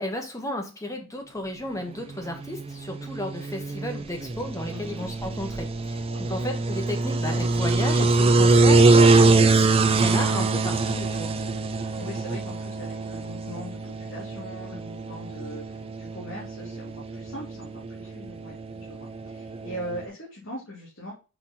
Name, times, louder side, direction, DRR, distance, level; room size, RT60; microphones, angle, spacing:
voice 1, 0.0-11.3, left 1 dB, 15° left, 3 dB, 1.2 m, -33 dB
sound 1, 2.0-20.1, right 3 dB, 25° right, 0.4 m, -24 dB
voice 2, 4.7-5.1 6.0-6.2 12.0-21.1, equal, 60° left, -4 dB, 2.1 m, -40 dB
5.7 x 4.1 x 4.1 m, 0.32 s
head